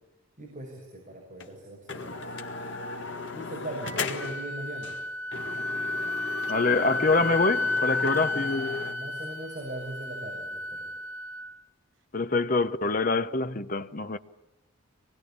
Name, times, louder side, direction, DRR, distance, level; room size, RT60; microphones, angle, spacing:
voice 1, 0.4-2.7 3.3-5.0 8.9-10.9, right 1 dB, 40° right, 6.2 m, -40 dB
sound 1, 1.4-1.5 1.9-4.5 4.8-5.0 5.3-8.9, left 4 dB, 55° left, 1.9 m, -36 dB
Wind instrument woodwind instrument, 3.8-11.6, left 2 dB, 60° right, 1.0 m, -32 dB
voice 2, 6.5-8.8 12.1-14.2, left 3 dB, 40° left, 0.9 m, -25 dB
25.0 x 20.5 x 8.7 m
head